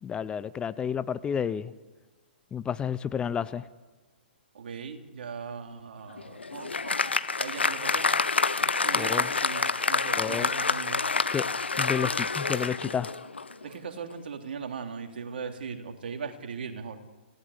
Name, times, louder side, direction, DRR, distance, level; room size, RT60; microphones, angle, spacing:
voice 1, 0.0-1.7 2.5-3.6 8.9-9.3 10.1-10.5 11.3-11.5 11.8-13.1, left 8 dB, 15° left, 15 dB, 0.7 m, -30 dB
voice 2, 4.5-8.1 8.8-11.0 13.6-17.0, right 6 dB, 65° right, 4 dB, 3.2 m, -39 dB
Applause, 6.1-13.6, left 4 dB, 85° left, 1.1 m, -27 dB
29.0 x 17.5 x 8.4 m, 1.3 s
figure-of-eight pair, 120°, 6 cm